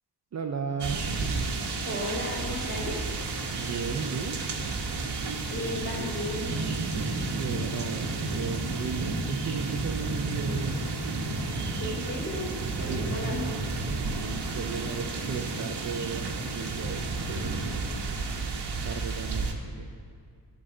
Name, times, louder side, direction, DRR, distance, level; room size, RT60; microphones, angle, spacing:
voice 1, 0.3-1.1 3.5-4.4 7.4-10.9 12.9-13.2 14.1-17.0 17.3-17.6 18.8-19.9, right 5 dB, 40° right, 5 dB, 0.5 m, -35 dB
sound 1, 0.8-19.5, right 3 dB, 65° right, 1.1 m, -31 dB
voice 2, 1.8-2.9 5.5-6.5 11.8-12.5 12.8-13.7, left 1 dB, 30° left, -4 dB, 2.6 m, -34 dB
11.5 x 4.0 x 7.6 m, 2.4 s
wide cardioid pair, 125°, 43 cm